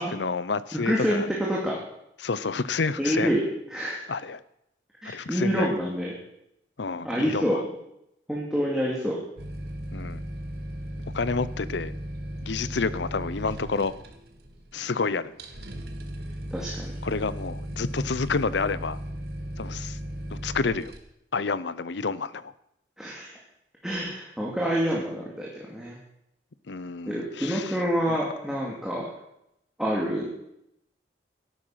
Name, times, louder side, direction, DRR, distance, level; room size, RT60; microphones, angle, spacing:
voice 1, 0.0-1.3 2.2-3.3 4.1-4.4 5.0-5.7 6.8-7.6 9.9-10.2 11.1-11.9 12.4-13.9 14.7-15.3 17.0-19.0 19.6-20.0 20.3-20.9 21.3-22.5 26.7-27.8 28.1-28.2, left 4 dB, 70° left, 17 dB, 0.7 m, -29 dB
voice 2, 0.7-1.8 3.0-3.4 3.7-4.1 5.0-6.1 7.0-7.6 8.3-9.2 16.5-16.9 23.0-23.3 23.8-26.0 27.1-29.1 29.8-30.3, equal, 5° right, -5 dB, 2.4 m, -27 dB
sound 1, 9.4-21.0, right 1 dB, 55° right, 1.9 m, -36 dB
13.5 x 11.5 x 5.8 m, 0.81 s
head